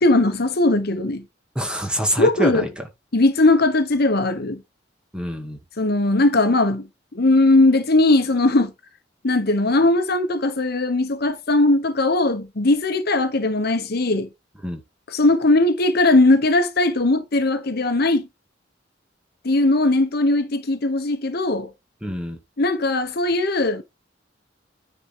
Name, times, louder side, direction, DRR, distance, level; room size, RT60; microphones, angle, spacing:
voice 1, 0.0-1.2 2.2-2.7 3.1-4.6 5.8-6.9 7.1-8.7 9.2-14.3 15.1-18.3 19.4-21.7 22.6-23.8, left 2 dB, 60° left, 1.1 m, -19 dB
voice 2, 1.6-2.8 5.1-5.6 14.6-14.8 22.0-22.4, equal, 5° right, 2.2 m, -26 dB
9.8 x 4.4 x 5.0 m
head